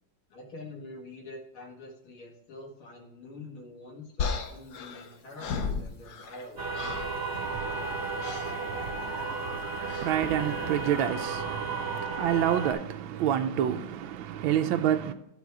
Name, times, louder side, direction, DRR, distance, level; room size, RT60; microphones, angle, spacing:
voice 1, 0.3-6.7, left 2 dB, 80° left, 2.7 m, -46 dB
sound 1, 4.2-6.5 6.7-7.2 8.2-8.5 9.9-10.2, left 5 dB, 60° left, 1.3 m, -34 dB
sound 2, 6.6-12.7, right 4 dB, 35° right, 1.3 m, -33 dB
voice 2, 7.3-15.1, right 10 dB, 75° right, 1.4 m, -29 dB
12.5 x 4.5 x 4.7 m
omnidirectional pair, 2.3 m